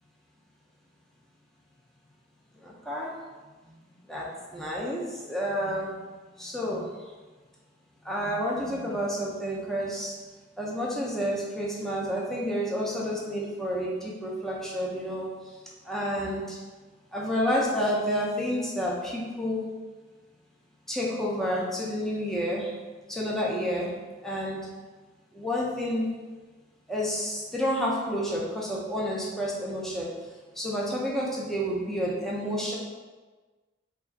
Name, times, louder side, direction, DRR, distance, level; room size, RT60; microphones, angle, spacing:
voice 1, 2.5-3.1 3.6-3.7 4.0-6.0 6.4-6.9 8.0-10.1 10.6-15.6 15.8-16.6 17.1-19.7 20.9-22.7 23.1-23.9 24.2-24.7 25.3-26.1 26.9-30.1 30.5-32.8, equal, ahead, -5 dB, 0.5 m, -30 dB
3.4 x 2.4 x 4.0 m, 1.3 s
head